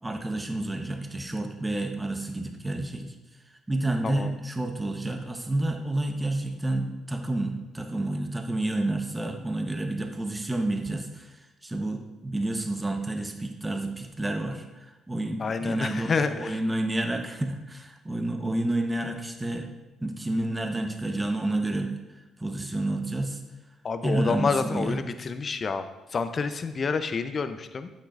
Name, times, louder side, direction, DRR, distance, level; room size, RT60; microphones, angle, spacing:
voice 1, 0.0-3.1 3.7-19.7 20.0-23.4 24.0-25.0, right 1 dB, 20° right, 5 dB, 0.9 m, -30 dB
voice 2, 15.4-16.6 23.8-25.8 26.1-27.9, left 5 dB, 45° left, 10 dB, 0.6 m, -28 dB
8.7 x 7.6 x 2.5 m, 1.1 s
hypercardioid pair, 50°, 0 cm